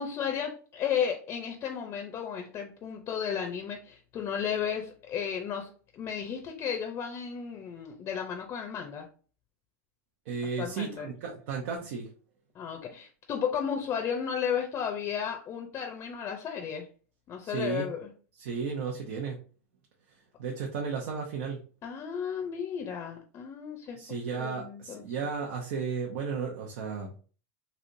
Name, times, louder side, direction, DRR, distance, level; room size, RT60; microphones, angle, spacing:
voice 1, 0.0-9.1 10.6-11.1 12.5-16.9 17.3-18.1 21.8-25.0, left 7 dB, 35° left, 4 dB, 0.6 m, -34 dB
voice 2, 10.3-12.1 17.4-17.9 18.4-19.4 20.4-21.7 23.9-27.2, right 5 dB, 70° right, 0 dB, 0.7 m, -34 dB
3.2 x 2.8 x 2.6 m, 0.39 s
hypercardioid pair, 120°, 8 cm